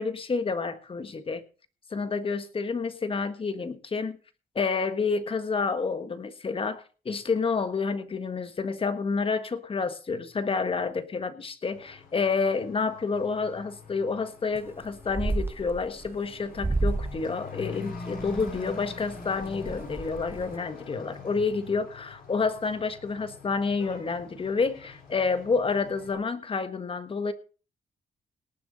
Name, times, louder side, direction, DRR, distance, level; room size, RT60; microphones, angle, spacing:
voice 1, 0.0-1.4 1.9-4.2 4.5-27.3, left 4 dB, 35° left, 10 dB, 1.5 m, -29 dB
Truck / Accelerating revving vroom, 11.7-26.1, left 3 dB, 80° left, 6.2 m, -44 dB
sound 1, 14.6-14.8 15.1-16.2 16.6-17.2 17.6-18.6 19.1-19.2 19.4-20.5, right 2 dB, 15° right, 0.7 m, -30 dB
18.5 x 7.0 x 5.4 m, 0.37 s
cardioid pair, 95°, 15 cm